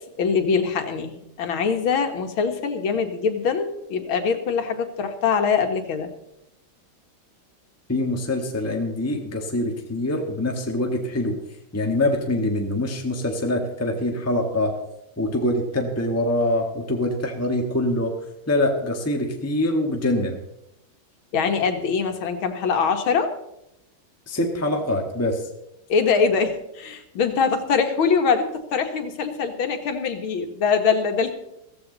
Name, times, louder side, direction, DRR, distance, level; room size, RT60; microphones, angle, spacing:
voice 1, 0.2-6.1 21.3-23.3 25.9-31.3, left 5 dB, 80° left, 6 dB, 2.2 m, -23 dB
voice 2, 7.9-11.4 11.7-14.7 15.2-18.1 18.5-20.4 24.3-25.5, left 1 dB, 10° left, 2 dB, 1.5 m, -24 dB
16.0 x 14.5 x 4.0 m, 0.83 s
omnidirectional pair, 2.2 m